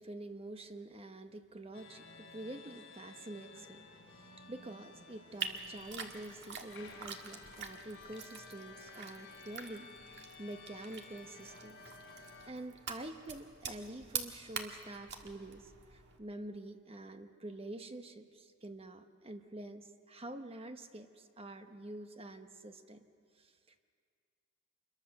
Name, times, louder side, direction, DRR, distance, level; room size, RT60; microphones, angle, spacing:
voice 1, 0.0-11.8 12.5-23.0 23.4-23.5, right 1 dB, 25° right, 7 dB, 1.1 m, -47 dB
sound 1, 1.7-12.5, left 4 dB, 55° left, 4.2 m, -54 dB
sound 2, 5.4-16.2, right 6 dB, 55° right, 1.7 m, -46 dB
27.0 x 22.0 x 6.6 m, 2.2 s
head